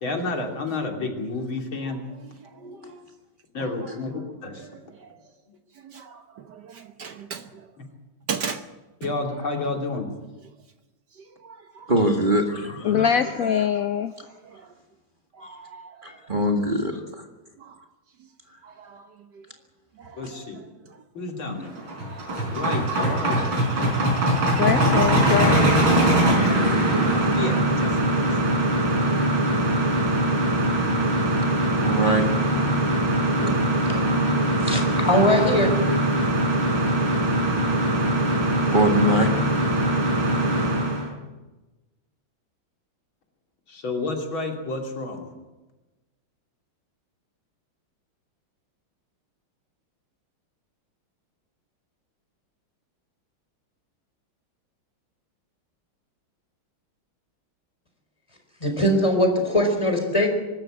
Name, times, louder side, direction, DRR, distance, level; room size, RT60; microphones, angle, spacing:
voice 1, 0.0-2.0 2.5-2.9 3.5-4.7 7.8-7.9 9.0-10.1 20.1-20.6 21.2-21.7 22.5-23.6 27.3-29.1 43.7-45.3, left 3 dB, 75° left, 3.9 m, -31 dB
voice 2, 2.6-3.0 5.0-5.1 5.8-7.5 8.3-8.6 11.4-11.9 14.5-14.6 15.4-15.9 17.6-17.8 18.6-19.1 19.3-19.4 20.0-20.3 22.0-22.3 24.0-24.4 26.3-26.8 27.1-27.2, right 6 dB, 60° right, 1.5 m, -37 dB
voice 3, 11.9-13.0 16.0-17.0 21.5-21.6 31.8-32.3 33.4-33.6 38.7-39.3, right 1 dB, 25° right, 1.9 m, -22 dB
voice 4, 12.5-14.1 24.2-25.8, left 8 dB, 60° left, 0.9 m, -24 dB
sound 1, 21.7-41.1, right 1 dB, 80° right, 6.1 m, -22 dB
voice 5, 34.6-35.8 58.6-60.3, left 1 dB, 15° left, 4.5 m, -21 dB
24.0 x 13.5 x 9.0 m
omnidirectional pair, 2.2 m